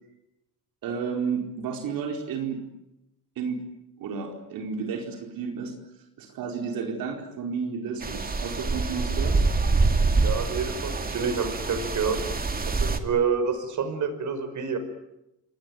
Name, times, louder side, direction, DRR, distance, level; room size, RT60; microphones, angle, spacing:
voice 1, 0.8-2.6 3.4-3.6 4.0-5.7 6.2-9.4, right 5 dB, 75° right, 3 dB, 4.6 m, -32 dB
sound 1, 8.0-13.0, right 3 dB, 25° right, 2.5 m, -25 dB
voice 2, 10.2-12.2 12.7-14.8, right 6 dB, 55° right, 10 dB, 5.5 m, -28 dB
28.0 x 20.5 x 9.3 m, 0.87 s
cardioid pair, 110°, 35 cm